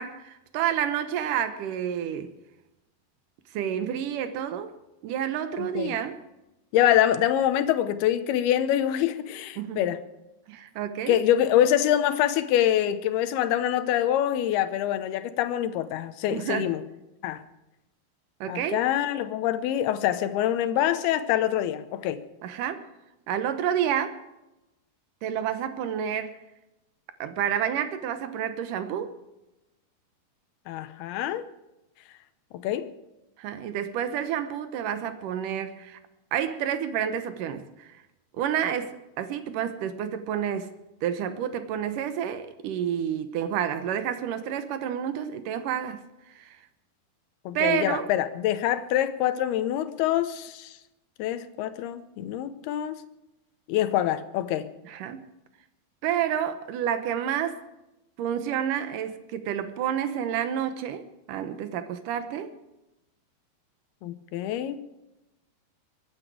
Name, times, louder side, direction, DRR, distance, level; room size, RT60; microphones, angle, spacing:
voice 1, 0.0-2.3 3.5-4.7 5.0-6.2 9.6-9.8 10.5-11.2 16.3-16.8 18.4-18.8 22.4-22.9 23.3-24.2 25.2-26.4 27.2-29.1 33.4-36.0 36.3-38.0 38.4-40.7 41.0-46.0 46.4-46.6 47.5-48.1 54.8-55.2 56.0-57.6 58.2-61.0 61.3-62.5, right 9 dB, 70° right, 10 dB, 2.2 m, -29 dB
voice 2, 5.6-5.9 6.7-10.0 11.1-16.8 17.2-17.4 18.5-22.2 30.7-31.5 32.5-32.9 47.5-50.8 51.2-53.0 53.7-54.7 64.0-64.8, left 11 dB, 80° left, 12 dB, 2.7 m, -25 dB
23.5 x 10.0 x 4.8 m, 0.95 s
omnidirectional pair, 4.7 m